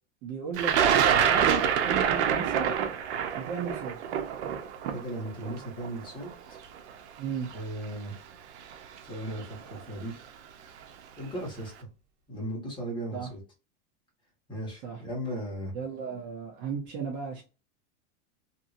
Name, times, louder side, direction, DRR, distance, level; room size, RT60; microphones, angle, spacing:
voice 1, 0.2-2.7 3.4-4.0 7.2-7.5 13.1-13.3 14.8-15.0 15.7-17.4, right 6 dB, 35° right, 0 dB, 0.7 m, -35 dB
Thunder, 0.6-6.6 7.5-7.6 8.7-9.0 9.3-9.8, right 8 dB, 85° right, 0.7 m, -26 dB
voice 2, 4.8-6.7 7.5-8.1 9.1-10.2 11.2-11.9 12.3-13.4 14.5-15.7, right 1 dB, 15° left, -3 dB, 1.3 m, -37 dB
2.7 x 2.7 x 2.5 m, 0.32 s
supercardioid pair, 165°, 33 cm